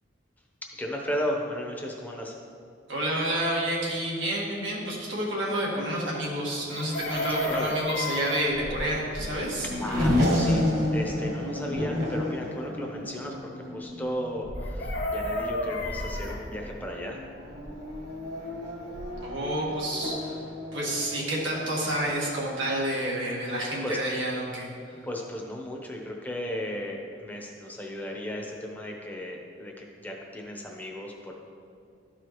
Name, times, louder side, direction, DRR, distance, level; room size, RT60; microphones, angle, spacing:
voice 1, 0.6-2.4 7.4-7.7 9.8-17.2 23.8-24.0 25.0-31.3, left 1 dB, 10° left, 0 dB, 0.8 m, -35 dB
voice 2, 2.9-9.7 19.2-20.4 20.7-24.7, right 1 dB, 85° right, -4 dB, 1.8 m, -29 dB
Race car auto racing / Accelerating revving vroom, 6.6-22.8, left 1 dB, 55° right, 1.7 m, -32 dB
Chicken rooster, 6.7-8.5 14.6-16.4 18.6-18.7 19.0-19.2, left 1 dB, 50° left, 1.1 m, -32 dB
12.5 x 4.8 x 3.1 m, 2.4 s
head